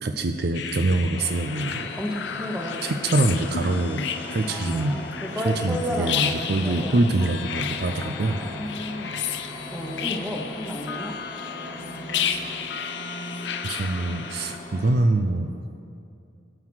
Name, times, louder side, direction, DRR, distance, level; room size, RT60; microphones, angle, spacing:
voice 1, 0.0-1.9 2.8-5.0 5.4-8.4 12.2-12.4 13.6-15.5, right 2 dB, 55° right, 7 dB, 0.5 m, -24 dB
sound 1, 0.5-14.6, left 7 dB, 65° left, 0.6 m, -32 dB
sound 2, 1.1-15.0, left 1 dB, 35° left, 1.0 m, -41 dB
voice 2, 2.0-2.8 4.4-7.0 7.9-9.1 9.7-11.2, equal, 5° right, 1 dB, 1.1 m, -32 dB
sound 3, 2.2-12.5, equal, 35° right, 2.5 m, -43 dB
17.5 x 5.8 x 6.3 m, 2.5 s
head